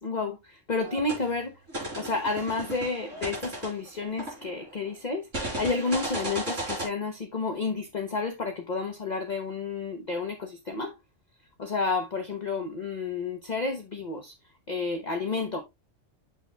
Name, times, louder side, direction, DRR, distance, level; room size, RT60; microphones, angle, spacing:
voice 1, 0.0-1.5 2.0-10.9 11.6-14.3 14.7-15.6, left 4 dB, 40° left, 1.0 m, -31 dB
sound 1, 0.8-1.2 1.7-4.7 5.3-6.9, right 1 dB, 75° right, 4.8 m, -35 dB
8.9 x 7.1 x 2.3 m
omnidirectional pair, 1.3 m